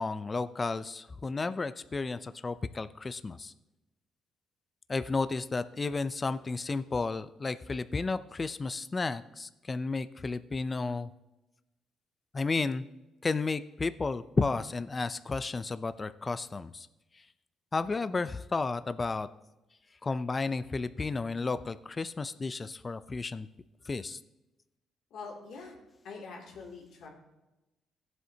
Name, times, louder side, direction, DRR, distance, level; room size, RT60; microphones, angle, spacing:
voice 1, 0.0-3.5 4.9-11.1 12.3-12.8 13.2-16.9 17.7-19.3 20.0-23.5 23.9-24.2, left 3 dB, 30° left, 13 dB, 0.4 m, -32 dB
voice 2, 25.1-25.8 26.0-27.1, left 4 dB, 75° left, -1 dB, 2.5 m, -44 dB
16.5 x 7.7 x 2.8 m, 1.0 s
cardioid pair, 90°, 0 cm